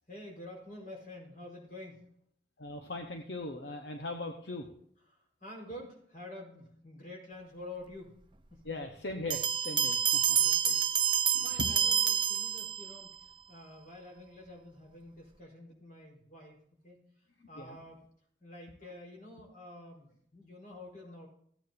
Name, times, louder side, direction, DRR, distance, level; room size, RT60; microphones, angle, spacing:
voice 1, 0.1-2.1 5.1-8.2 8.5-8.6 10.4-16.6 16.8-17.0 17.5-18.0 18.4-21.3, left 1 dB, 45° left, 0 dB, 4.5 m, -48 dB
voice 2, 2.6-4.7 8.6-10.4 10.6-10.9 11.3-11.5 17.6-17.8, left 2 dB, 70° left, 4 dB, 1.1 m, -40 dB
Bell, 9.3-13.1, right 8 dB, 25° right, 0.6 m, -28 dB
16.0 x 9.2 x 2.7 m, 0.66 s
head